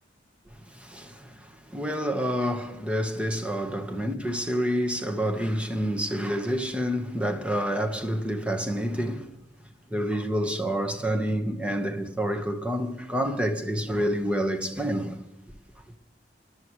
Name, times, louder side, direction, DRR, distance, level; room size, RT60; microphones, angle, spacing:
voice 1, 0.7-9.3 9.9-15.2, equal, 5° right, 1.2 m, -28 dB
23.5 x 11.0 x 3.2 m
head